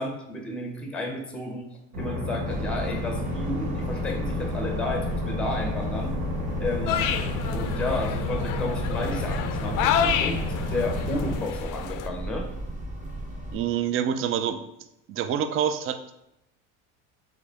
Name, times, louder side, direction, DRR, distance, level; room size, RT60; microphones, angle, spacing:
voice 1, 0.0-1.7 2.0-6.1 6.6-7.1 7.5-10.4 10.7-12.5, left 2 dB, 5° left, 3 dB, 0.6 m, -32 dB
sound 1, 1.9-11.4, left 2 dB, 75° right, 1.4 m, -31 dB
sound 2, 2.5-13.6, right 1 dB, 20° right, 0.9 m, -35 dB
sound 3, 6.9-12.1, left 8 dB, 55° left, 0.5 m, -29 dB
voice 2, 13.5-14.6 15.1-16.2, right 9 dB, 35° right, 10 dB, 0.4 m, -26 dB
3.8 x 3.5 x 3.3 m, 0.85 s
supercardioid pair, 95°, 37 cm